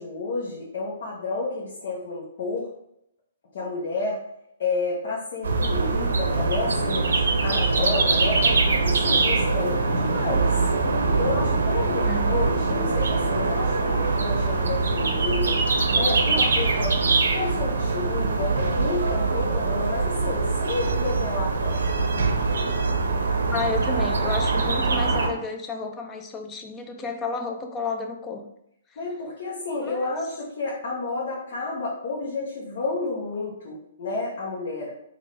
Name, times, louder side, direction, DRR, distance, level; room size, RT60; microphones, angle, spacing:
voice 1, 0.0-2.7 3.5-4.2 4.6-10.5 11.1-15.6 15.9-17.0 17.3-22.1 29.0-34.9, left 3 dB, 55° left, -5 dB, 1.0 m, -30 dB
sound 1, 5.4-25.3, right 3 dB, 70° right, 0.6 m, -23 dB
voice 2, 11.9-12.4 23.5-28.4 29.8-30.0, left 3 dB, 20° left, 5 dB, 0.5 m, -31 dB
3.8 x 2.4 x 3.2 m, 0.77 s
figure-of-eight pair, 130°, 0 cm